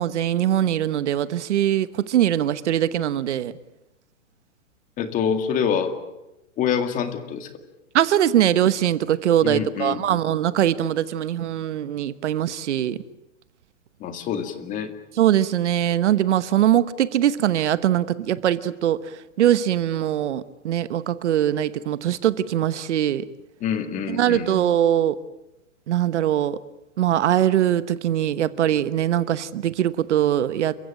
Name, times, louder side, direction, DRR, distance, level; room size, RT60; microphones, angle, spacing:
voice 1, 0.0-3.5 7.9-13.0 15.2-19.0 19.4-23.2 24.1-25.2 25.9-26.6 27.0-30.8, right 11 dB, 60° right, 15 dB, 1.2 m, -22 dB
voice 2, 5.0-5.9 6.6-7.5 9.4-10.2 14.0-14.9 23.6-24.5, left 7 dB, 20° left, 8 dB, 2.1 m, -26 dB
30.0 x 15.5 x 8.9 m, 0.92 s
hypercardioid pair, 150°, 39 cm